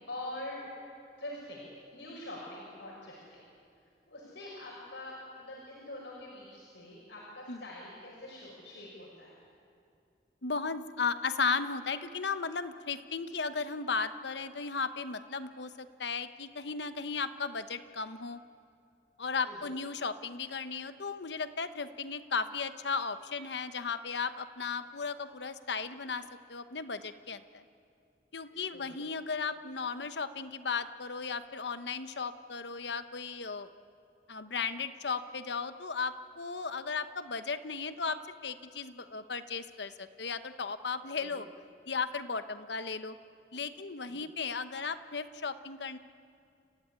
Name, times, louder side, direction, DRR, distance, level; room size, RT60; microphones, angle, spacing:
voice 1, 0.1-0.6 1.2-1.7 1.9-3.4 4.1-9.4 19.4-19.6 28.5-29.0 41.2-41.4 44.0-44.2, left 1 dB, 85° left, -5 dB, 6.0 m, -44 dB
voice 2, 10.4-18.4 19.2-26.2 26.5-27.6 28.3-33.7 34.3-41.5 41.9-43.2 43.5-46.0, left 5 dB, 70° left, 11 dB, 1.1 m, -35 dB
30.0 x 15.0 x 9.9 m, 2.4 s
head